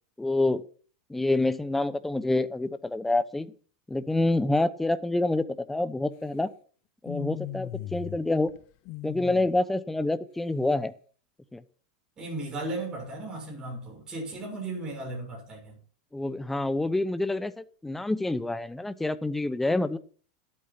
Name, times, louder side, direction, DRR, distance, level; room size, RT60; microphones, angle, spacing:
voice 1, 0.2-0.6 1.1-3.5 3.9-6.5 7.0-8.5 9.0-10.9 11.5-11.6 16.1-20.0, left 2 dB, 5° left, 0.8 m, -27 dB
sound 1, 7.1-8.2 8.5-9.5, left 14 dB, 50° left, 0.8 m, -37 dB
voice 2, 12.2-15.8, right 2 dB, 20° right, 6.7 m, -36 dB
12.0 x 8.8 x 5.8 m
supercardioid pair, 135°, 4 cm